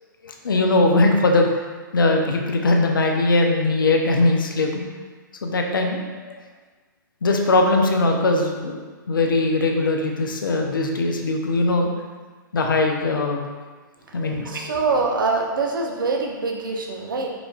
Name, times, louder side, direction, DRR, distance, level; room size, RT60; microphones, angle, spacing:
voice 1, 0.2-1.5 1.9-4.8 5.4-6.3 7.2-8.8 9.1-11.9 12.5-13.4 14.1-14.5, left 2 dB, 80° left, 2 dB, 0.5 m, -20 dB
voice 2, 14.4-17.3, right 3 dB, 80° right, 1 dB, 0.6 m, -24 dB
4.9 x 2.4 x 2.4 m, 1.4 s
hypercardioid pair, 115°, 11 cm